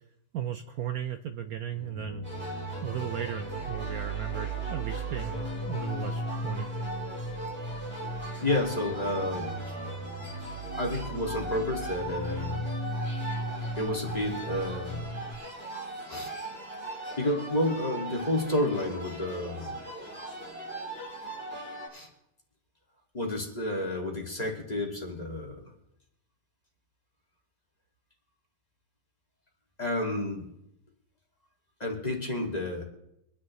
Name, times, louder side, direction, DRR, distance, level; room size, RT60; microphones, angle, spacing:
voice 1, 0.3-2.3 2.8-6.7, right 9 dB, 65° right, 8 dB, 1.0 m, -36 dB
sound 1, 1.7-15.3, right 1 dB, 80° left, 2.3 m, -37 dB
sound 2, 2.2-21.9, right 2 dB, 5° right, 3.0 m, -40 dB
voice 2, 8.4-9.6 10.8-12.6 13.8-15.2 16.1-16.3 17.2-19.8 21.9-22.1 23.1-25.6 29.8-30.5 31.8-32.8, left 1 dB, 25° left, -1 dB, 2.1 m, -30 dB
24.5 x 10.0 x 3.1 m, 0.85 s
omnidirectional pair, 1.9 m